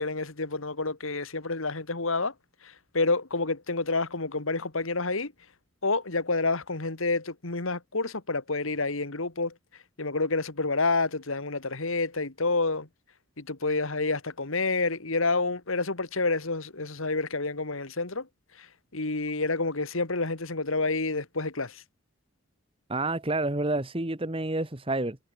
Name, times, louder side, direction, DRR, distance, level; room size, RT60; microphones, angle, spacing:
voice 1, 0.0-2.3 2.6-5.3 5.8-9.5 10.0-12.9 13.4-18.3 18.6-18.7 18.9-21.8, left 3 dB, 75° left, 2.1 m, -29 dB
voice 2, 22.9-25.2, right 2 dB, 25° right, 1.3 m, -29 dB
head